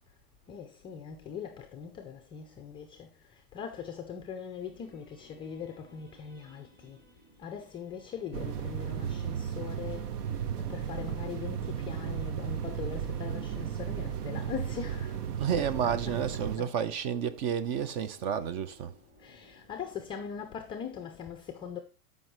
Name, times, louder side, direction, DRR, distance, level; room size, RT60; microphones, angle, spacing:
voice 1, 0.5-7.0 7.4-10.2 10.5-15.2 15.5-16.7 19.2-21.8, left 7 dB, 10° left, 0.3 m, -41 dB
sound 1, 4.6-20.6, right 1 dB, 20° right, 3.3 m, -61 dB
sound 2, 8.3-16.6, right 8 dB, 70° right, 1.0 m, -35 dB
voice 2, 15.4-18.9, right 8 dB, 45° right, 0.9 m, -31 dB
13.0 x 5.4 x 3.1 m
hypercardioid pair, 125°, 47 cm